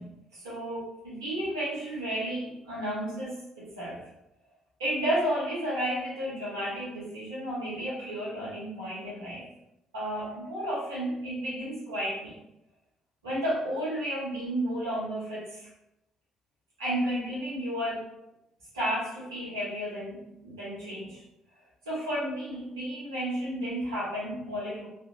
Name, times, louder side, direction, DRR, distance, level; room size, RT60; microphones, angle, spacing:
voice 1, 0.0-4.0 4.8-9.5 9.9-12.3 13.2-15.7 16.8-18.1 18.7-21.2 21.8-24.9, equal, 80° right, -9 dB, 1.2 m, -32 dB
4.1 x 2.7 x 2.4 m, 0.86 s
figure-of-eight pair, 45°, 2 cm